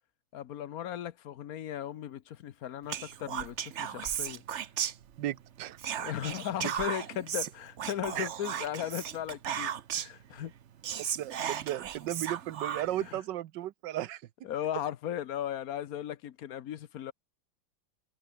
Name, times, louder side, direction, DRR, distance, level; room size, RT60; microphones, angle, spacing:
voice 1, 0.3-4.4 6.0-10.5 13.1-13.2 14.4-17.1, left 10 dB, 60° left, 1.1 m, -37 dB
Whispering, 2.9-5.4 5.8-10.2 10.6-10.7 10.8-13.1, right 9 dB, 55° right, 0.8 m, -36 dB
voice 2, 5.2-5.8 8.2-8.3 11.0-14.2, right 13 dB, 70° right, 1.3 m, -35 dB
omnidirectional pair, 2.1 m